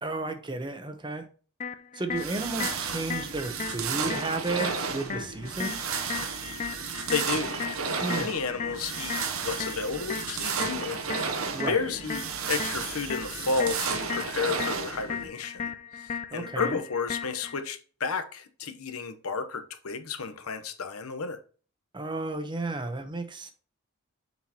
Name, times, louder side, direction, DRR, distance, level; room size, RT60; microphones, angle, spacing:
voice 1, 0.0-1.3 1.9-6.0 8.0-8.3 11.5-11.9 16.3-16.8 21.9-23.5, right 2 dB, 20° right, 0.9 m, -33 dB
sound 1, 1.6-17.6, left 6 dB, 35° left, 0.5 m, -37 dB
sound 2, 2.1-15.3, right 6 dB, 75° right, 0.9 m, -33 dB
voice 2, 6.5-12.2 12.5-21.4, left 5 dB, 90° left, 1.0 m, -32 dB
7.3 x 5.7 x 3.0 m
head